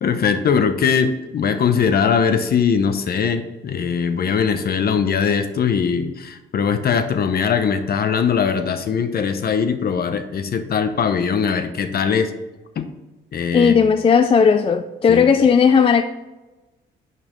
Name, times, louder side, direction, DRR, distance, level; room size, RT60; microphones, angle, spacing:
voice 1, 0.0-12.3 12.8-12.9 13.3-13.9 15.1-15.3, left 6 dB, 50° left, 0.8 m, -20 dB
voice 2, 13.5-16.0, left 6 dB, 30° left, 0.4 m, -15 dB
6.7 x 5.5 x 3.1 m
cardioid pair, 90°, 20 cm